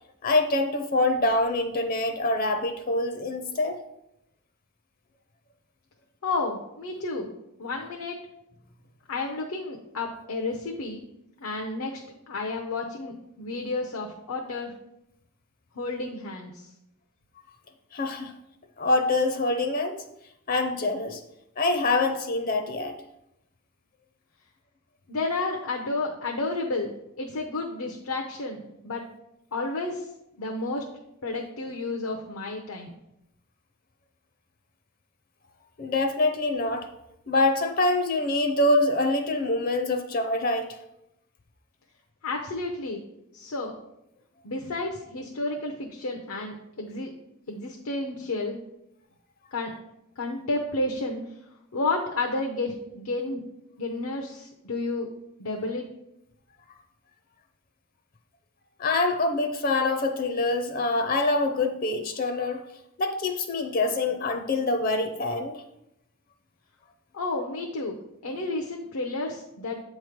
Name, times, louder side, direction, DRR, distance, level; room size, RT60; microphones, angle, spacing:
voice 1, 0.2-3.8 17.9-18.3 18.8-20.0 20.5-21.2 21.6-22.9 35.8-36.9 37.3-40.8 58.8-62.6 63.0-65.6, left 2 dB, 40° left, 5 dB, 0.5 m, -25 dB
voice 2, 6.2-7.3 7.6-8.2 9.1-11.0 11.4-12.0 12.3-14.7 15.7-16.7 25.1-29.0 29.5-30.1 30.4-30.8 31.2-32.9 42.2-43.0 43.3-43.7 44.4-47.1 47.5-48.6 49.5-49.7 50.2-51.2 51.7-53.4 53.8-55.1 55.4-55.9 67.1-68.0 68.2-69.8, left 2 dB, 80° left, 1 dB, 0.7 m, -31 dB
8.3 x 3.1 x 5.1 m, 0.83 s
head